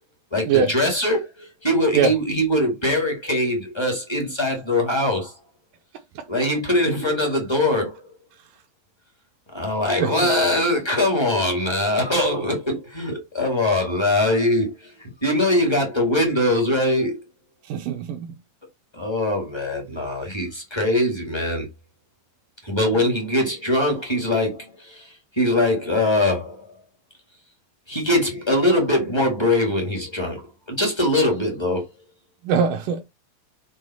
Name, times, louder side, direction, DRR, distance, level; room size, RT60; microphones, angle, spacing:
voice 1, 0.3-5.3 6.3-8.0 9.5-17.2 18.9-21.6 22.6-26.6 27.9-30.4 30.7-31.9, left 1 dB, 10° left, 1.2 m, -22 dB
voice 2, 10.0-10.3 17.7-18.3 19.9-20.0 32.4-33.0, right 6 dB, 75° right, 2.2 m, -22 dB
6.4 x 3.6 x 4.3 m
omnidirectional pair, 4.1 m